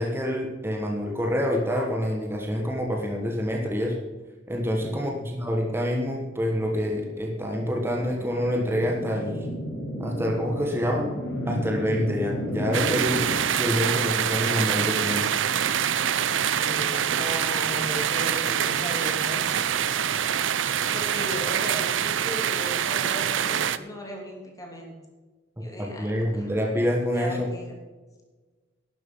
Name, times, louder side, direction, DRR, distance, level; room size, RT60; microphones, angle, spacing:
voice 1, 0.0-4.0 4.5-9.5 10.0-11.1 11.4-13.3 13.6-15.3 25.8-27.5, equal, 15° right, 0 dB, 1.3 m, -27 dB
voice 2, 4.7-5.1 16.5-19.7 19.9-20.1 20.5-24.9 25.6-26.5 27.1-27.7, left 1 dB, 20° left, 0 dB, 2.9 m, -37 dB
sound 1, 5.8-13.4, equal, 65° left, 4.9 m, -34 dB
sound 2, 12.7-23.8, right 9 dB, 80° right, 0.5 m, -25 dB
12.0 x 7.5 x 7.1 m, 1.3 s
head